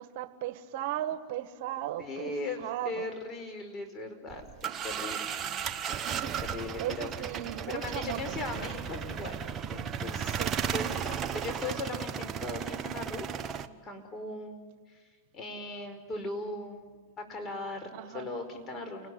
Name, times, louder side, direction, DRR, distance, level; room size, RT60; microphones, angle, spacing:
voice 1, 0.0-2.3 2.6-3.1 5.6-6.4 6.8-8.4 10.4-10.6 17.9-18.3, right 12 dB, 60° right, 11 dB, 1.4 m, -37 dB
voice 2, 2.0-5.2 6.5-7.1 7.7-9.4 9.7-13.3 13.5-14.8 15.3-19.1, left 2 dB, 25° left, 5 dB, 5.2 m, -38 dB
sound 1, 4.3-13.7, right 8 dB, 30° right, 1.2 m, -35 dB
29.0 x 19.5 x 9.6 m, 1.4 s
hypercardioid pair, 115°, 0 cm